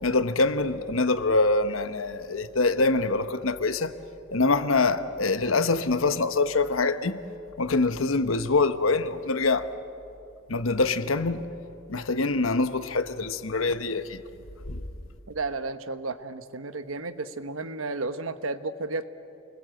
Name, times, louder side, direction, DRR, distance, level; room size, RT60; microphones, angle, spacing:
voice 1, 0.0-3.9 4.3-7.2 7.6-9.7 10.5-11.4 11.9-14.2 14.7-14.8, left 3 dB, 85° left, 1.1 m, -24 dB
voice 2, 15.3-19.0, right 3 dB, 85° right, 1.2 m, -33 dB
29.0 x 21.5 x 7.8 m
head